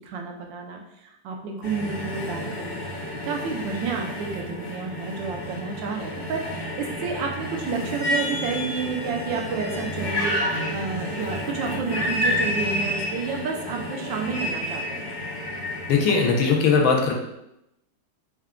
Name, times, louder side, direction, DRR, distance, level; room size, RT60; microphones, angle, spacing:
voice 1, 0.0-2.8 3.2-15.1, right 5 dB, 75° right, 2 dB, 1.3 m, -30 dB
sound 1, 1.6-16.5, left 1 dB, 65° left, 0.5 m, -30 dB
voice 2, 15.9-17.1, left 5 dB, 85° left, 1 dB, 1.5 m, -19 dB
4.5 x 2.2 x 3.6 m, 0.84 s
omnidirectional pair, 2.1 m